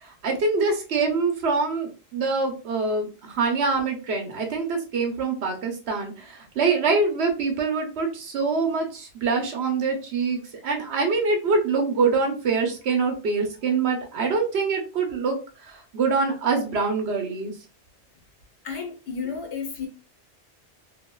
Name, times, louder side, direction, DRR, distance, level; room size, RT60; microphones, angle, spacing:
voice 1, 0.0-17.5, right 4 dB, 70° right, 1.1 m, -25 dB
voice 2, 18.6-19.9, left 6 dB, 90° left, 1.2 m, -32 dB
2.9 x 2.8 x 2.3 m
omnidirectional pair, 1.2 m